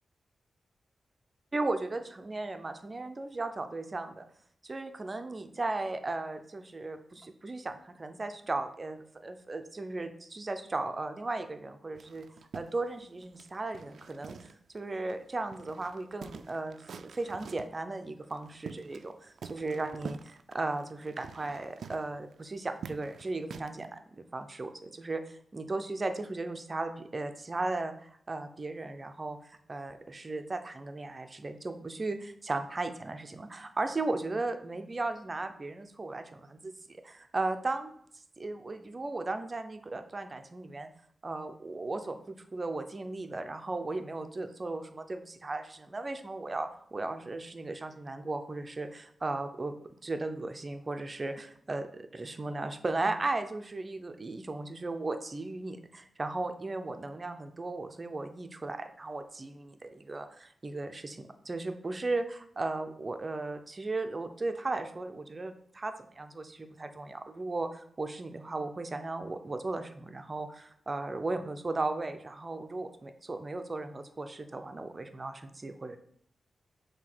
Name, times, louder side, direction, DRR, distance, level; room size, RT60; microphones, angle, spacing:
voice 1, 1.5-4.2 4.6-12.3 12.5-24.0 24.3-37.9 38.4-40.9 41.2-49.8 50.0-76.0, right 2 dB, 25° right, 7 dB, 0.5 m, -36 dB
sound 1, 11.9-14.8 15.1-15.2 15.5-17.8 18.3-19.1 19.4-23.9, right 6 dB, 85° right, 0.3 m, -47 dB
7.4 x 2.8 x 5.9 m, 0.64 s
wide cardioid pair, 165°, 0 cm